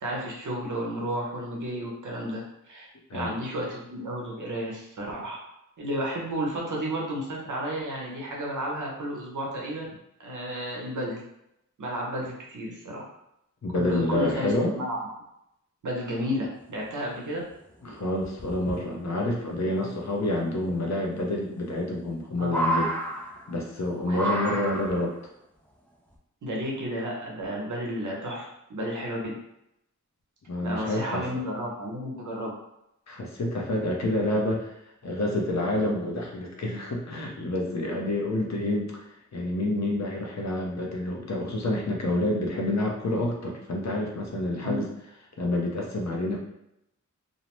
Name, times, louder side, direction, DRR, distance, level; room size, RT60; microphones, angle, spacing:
voice 1, 0.0-2.9 3.1-5.4 5.8-9.9 10.2-11.2 11.8-13.0 13.7-15.0 15.8-17.4 19.8-19.9 22.4-22.6 24.1-24.6 26.4-29.3 30.6-32.5 44.6-44.8, equal, 75° right, -3 dB, 0.8 m, -32 dB
voice 2, 13.6-14.7 17.8-22.9 23.5-25.1 30.5-31.4 33.1-34.8 35.0-39.0 39.3-44.9 45.4-46.4, left 1 dB, 60° left, 0 dB, 0.7 m, -28 dB
sound 1, 17.1-17.2 17.5-17.6 18.2-18.8 20.3-20.4 21.6-22.1 22.4-23.7 24.1-25.1 26.1-26.2, right 1 dB, 5° left, 0.4 m, -30 dB
2.6 x 2.0 x 3.0 m, 0.81 s
wide cardioid pair, 80°, 31 cm